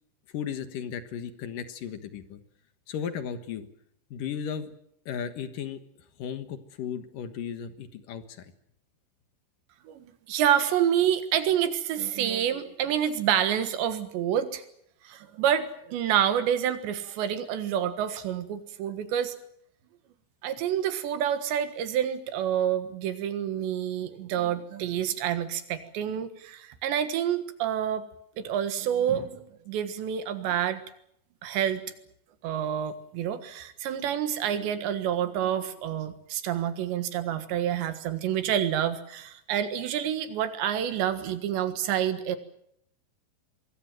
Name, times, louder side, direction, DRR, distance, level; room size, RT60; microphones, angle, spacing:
voice 1, 0.3-2.4 2.9-3.7 4.1-4.7 5.1-5.8 6.2-8.5, left 8 dB, 60° left, 10 dB, 2.5 m, -35 dB
voice 2, 9.9-14.6 15.1-19.4 20.4-28.1 28.4-30.8 31.4-31.8 32.4-42.4, right 10 dB, 75° right, 10 dB, 3.7 m, -28 dB
24.5 x 21.5 x 7.7 m, 0.72 s
omnidirectional pair, 5.2 m